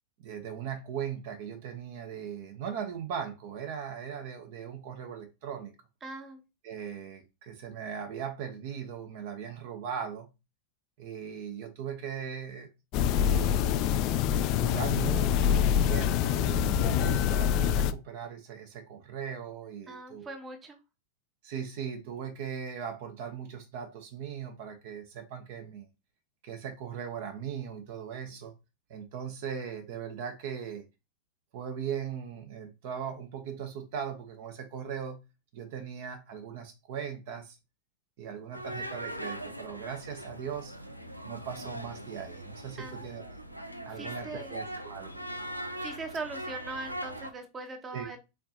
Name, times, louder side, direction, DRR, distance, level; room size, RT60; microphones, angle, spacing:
voice 1, 0.2-5.7 6.6-10.3 11.0-12.7 13.1-13.6 14.5-20.3 21.4-25.9 26.4-28.5 28.9-30.8 31.5-35.2 35.5-37.6 38.2-40.7 41.2-43.4 43.8-45.2 47.9-48.1, right 8 dB, 50° right, 0.8 m, -39 dB
voice 2, 6.0-6.4 19.9-20.8 42.8-43.1 44.0-44.6 45.8-48.2, right 3 dB, 20° right, 0.9 m, -40 dB
sound 1, 12.9-17.9, left 9 dB, 40° left, 0.3 m, -25 dB
sound 2, 38.5-47.3, right 1 dB, 90° right, 0.5 m, -40 dB
4.3 x 3.9 x 2.7 m
figure-of-eight pair, 90°, 0 cm